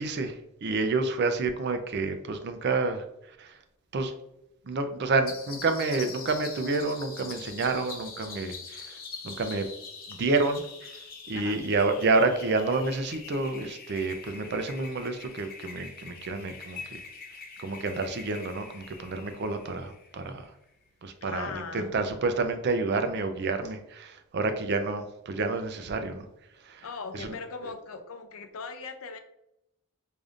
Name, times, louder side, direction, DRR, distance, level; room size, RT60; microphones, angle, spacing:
voice 1, 0.0-3.6 3.9-4.1 4.6-9.0 9.2-9.7 10.1-10.9 11.3-17.0 17.6-20.5 21.0-26.3 26.6-26.8 27.1-27.4, right 3 dB, 50° right, 8 dB, 0.4 m, -29 dB
sound 1, 5.3-20.5, left 5 dB, 45° left, 0.7 m, -44 dB
voice 2, 21.2-21.9 26.8-29.2, left 5 dB, 80° left, 8 dB, 0.5 m, -39 dB
4.9 x 2.6 x 2.4 m, 0.83 s
head